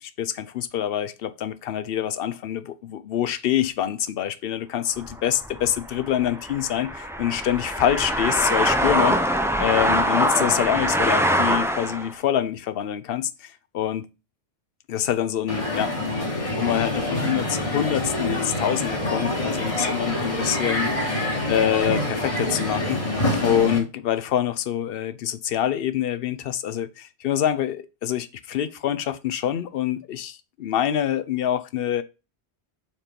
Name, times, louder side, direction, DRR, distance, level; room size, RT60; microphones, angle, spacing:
voice 1, 0.0-9.2 9.6-14.1 14.9-16.1 16.4-21.2 21.5-23.0 23.4-32.0, left 10 dB, 65° left, 0.7 m, -26 dB
sound 1, 5.0-12.1, equal, 5° right, 0.5 m, -23 dB
Crowd, 15.5-23.8, left 1 dB, 30° left, 1.4 m, -26 dB
4.4 x 4.4 x 5.1 m
omnidirectional pair, 1.1 m